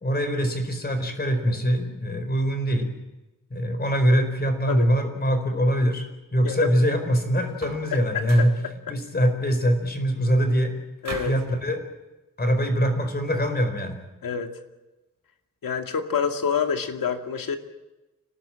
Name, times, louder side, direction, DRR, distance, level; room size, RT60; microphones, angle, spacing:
voice 1, 0.0-2.9 3.5-6.0 6.3-8.5 8.9-10.7 11.2-11.8 12.4-14.0, equal, 30° left, 6 dB, 4.5 m, -23 dB
sound 1, 7.5-7.9 8.2-8.6 11.0-11.5, right 4 dB, 55° right, 4.2 m, -38 dB
voice 2, 7.9-8.5 8.9-9.0 11.0-11.4 14.2-14.5 15.6-17.6, left 6 dB, 80° left, 5 dB, 2.4 m, -27 dB
26.5 x 18.5 x 9.0 m, 1.1 s
wide cardioid pair, 160°, 33 cm